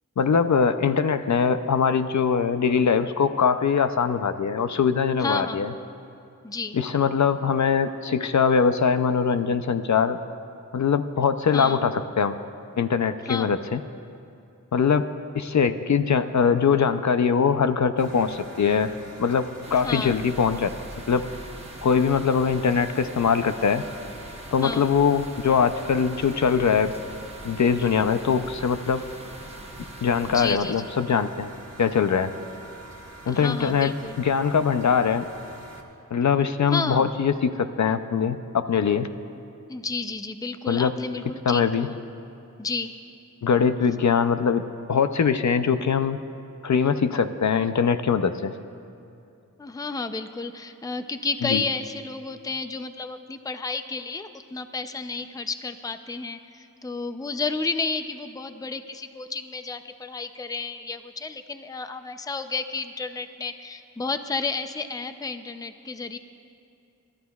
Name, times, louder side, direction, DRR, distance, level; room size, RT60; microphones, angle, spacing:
voice 1, 0.2-5.7 6.7-10.2 10.7-12.4 12.8-13.8 14.7-15.1 15.4-18.9 19.2-20.7 21.1-21.2 21.8-23.8 24.5-26.9 27.4-29.0 30.0-31.5 31.8-32.3 33.3-33.9 34.2-35.2 36.1-39.1 40.7-40.9 41.5-41.9 43.4-44.6 44.9-46.2 46.6-48.5 51.4-51.6, left 6 dB, 60° left, 10 dB, 0.5 m, -22 dB
voice 2, 5.2-5.7 6.4-6.8 11.5-11.9 13.2-13.6 19.7-20.2 24.6-24.9 30.3-30.9 33.3-34.2 36.7-37.1 39.7-42.0 42.6-42.9 49.6-66.2, left 4 dB, 10° left, 9 dB, 0.5 m, -31 dB
sound 1, 18.0-35.8, right 1 dB, 50° right, 1.6 m, -45 dB
sound 2, 19.6-30.6, right 2 dB, 20° right, 1.0 m, -43 dB
29.5 x 13.0 x 2.3 m, 2.6 s
wide cardioid pair, 105°, 33 cm